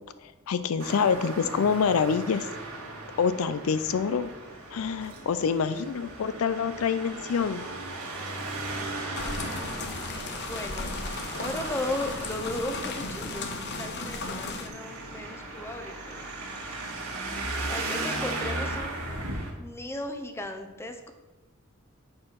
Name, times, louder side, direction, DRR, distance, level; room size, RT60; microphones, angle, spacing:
voice 1, 0.2-2.5 3.2-4.3 4.7-7.6, left 6 dB, 70° left, 13 dB, 0.4 m, -26 dB
Traffic noise roadway noise, 0.8-19.5, right 2 dB, 90° right, 1.8 m, -37 dB
sound 1, 9.1-14.7, left 3 dB, 55° left, 0.9 m, -35 dB
voice 2, 9.4-10.9 11.4-16.3 17.7-19.0 19.6-21.1, left 1 dB, 10° left, 6 dB, 0.7 m, -36 dB
7.5 x 4.6 x 5.8 m, 1.2 s
head